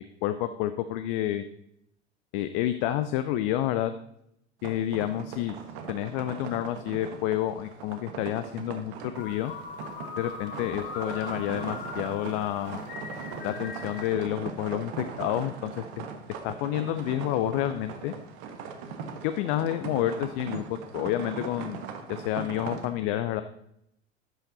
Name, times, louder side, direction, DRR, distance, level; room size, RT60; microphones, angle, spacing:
voice 1, 0.2-1.4 2.3-3.9 4.6-5.6 5.9-9.5 10.2-12.8 13.4-16.1 16.4-18.1 19.2-21.8 22.1-23.4, left 12 dB, 50° left, 11 dB, 0.6 m, -29 dB
sound 1, 4.6-22.8, right 5 dB, 50° right, 1.3 m, -40 dB
sound 2, 9.1-14.1, left 5 dB, 35° left, 1.5 m, -41 dB
12.0 x 5.7 x 4.0 m, 0.78 s
figure-of-eight pair, 75°, 33 cm